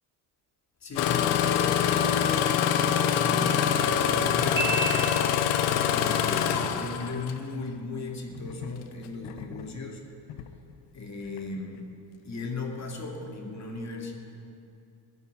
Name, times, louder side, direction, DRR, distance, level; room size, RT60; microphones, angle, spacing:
voice 1, 0.8-4.7 5.6-10.0 10.9-11.8 12.2-14.1, left 3 dB, 35° left, 1 dB, 2.6 m, -36 dB
Engine starting, 1.0-7.4 8.4-8.7 9.2-9.7 10.3-10.4, left 9 dB, 85° left, 1.0 m, -25 dB
Piano, 4.6-5.7, right 4 dB, 5° right, 3.9 m, -30 dB
15.5 x 7.0 x 9.9 m, 2.5 s
supercardioid pair, 80°, 47 cm